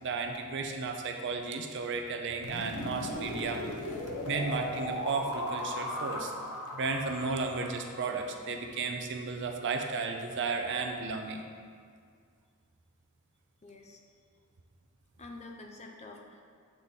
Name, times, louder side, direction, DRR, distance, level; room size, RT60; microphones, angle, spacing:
voice 1, 0.0-3.7 4.3-6.3 6.7-11.4, right 4 dB, 55° right, 4 dB, 0.5 m, -34 dB
sound 1, 2.4-8.4, left 1 dB, 85° left, 0.7 m, -38 dB
voice 2, 13.6-14.0 15.2-16.4, left 2 dB, 30° left, 1 dB, 0.6 m, -47 dB
8.1 x 3.6 x 4.0 m, 2.1 s
head